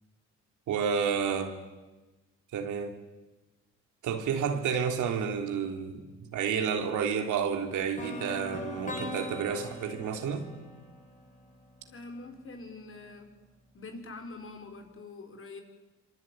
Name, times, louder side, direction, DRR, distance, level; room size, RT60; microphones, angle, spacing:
voice 1, 0.7-1.6 2.5-3.0 4.0-10.5, right 7 dB, 80° right, 5 dB, 3.5 m, -30 dB
sound 1, 8.0-11.9, left 2 dB, 25° left, 6.3 m, -40 dB
voice 2, 11.9-13.3 13.7-15.6, left 3 dB, 45° left, 6 dB, 5.2 m, -44 dB
26.0 x 24.5 x 9.4 m, 1.2 s
cardioid pair, 90°, 30 cm